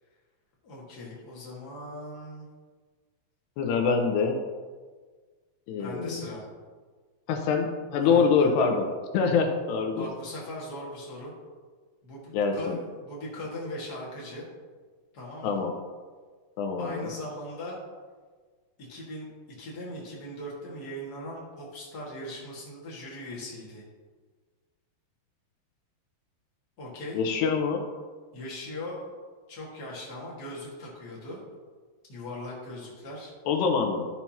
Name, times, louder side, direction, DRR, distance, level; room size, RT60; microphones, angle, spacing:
voice 1, 0.6-2.5 5.8-6.4 8.0-8.5 9.9-11.3 12.0-14.5 15.1-15.6 16.8-17.8 18.9-19.3 19.6-23.8 26.8-27.2 28.3-29.1 29.5-31.4 32.1-33.3, left 1 dB, 55° left, -5 dB, 1.1 m, -39 dB
voice 2, 3.6-4.4 5.7-6.3 7.3-10.1 12.3-12.8 15.4-15.7 16.6-17.1 27.1-27.8 33.5-34.1, left 5 dB, 85° left, 3 dB, 2.9 m, -25 dB
12.5 x 5.9 x 2.9 m, 1.5 s
omnidirectional pair, 4.8 m